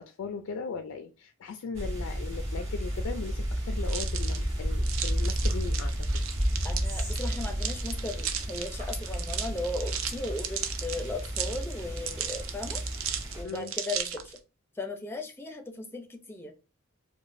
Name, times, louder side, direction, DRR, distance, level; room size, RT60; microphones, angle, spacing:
voice 1, 0.0-6.2 13.4-13.7, left 5 dB, 70° left, 7 dB, 0.3 m, -38 dB
sound 1, 1.7-13.4, equal, 30° right, 1.5 m, -32 dB
sound 2, 3.8-14.4, right 8 dB, 75° right, 0.5 m, -36 dB
voice 2, 6.6-12.8 13.3-14.4 14.8-16.5, left 2 dB, 10° left, 5 dB, 0.5 m, -37 dB
4.8 x 2.1 x 2.5 m, 0.31 s
head